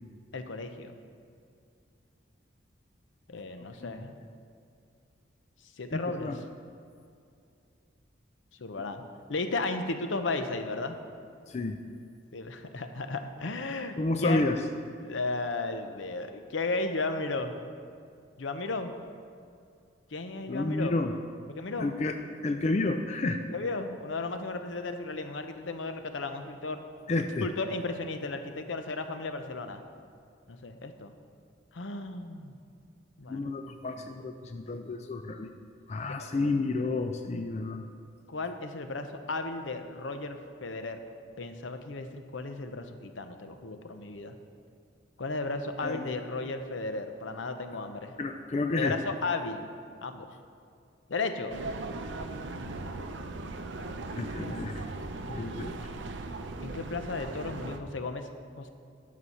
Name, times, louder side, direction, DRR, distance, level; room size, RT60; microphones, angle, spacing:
voice 1, 0.3-1.0 3.3-4.1 5.8-6.4 8.6-9.0 9.3-11.0 12.3-14.4 15.0-17.5 18.4-18.9 20.1-20.9 21.5-21.9 23.5-26.8 27.4-29.8 30.5-31.1 31.7-32.5 33.2-33.5 34.0-34.1 36.3-36.5 38.3-41.0 41.4-44.4 45.2-48.1 48.8-49.7 50.0-50.3 51.1-51.7 53.9-54.0 54.4-54.6 56.6-58.3 58.6-58.7, left 3 dB, 80° left, 8 dB, 0.7 m, -34 dB
voice 2, 5.9-6.4 11.5-11.8 14.0-14.6 20.5-21.1 21.8-22.2 22.4-23.4 27.1-27.5 33.3-35.5 35.9-37.8 45.8-46.1 48.2-48.9 54.2-54.8 55.2-55.8, left 2 dB, 35° left, 6 dB, 0.4 m, -30 dB
sound 1, 51.5-57.8, right 2 dB, 70° right, 0.6 m, -38 dB
9.8 x 6.1 x 5.5 m, 2.4 s
head